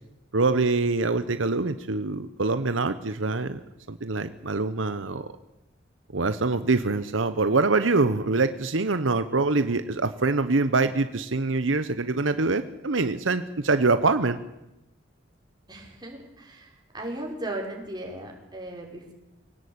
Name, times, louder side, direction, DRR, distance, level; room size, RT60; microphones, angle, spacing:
voice 1, 0.3-3.6 3.9-5.3 6.1-14.4, right 3 dB, 85° right, 11 dB, 1.0 m, -24 dB
voice 2, 15.7-16.7 16.9-19.1, right 1 dB, 20° right, 0 dB, 5.1 m, -36 dB
23.5 x 17.5 x 8.7 m, 0.93 s
head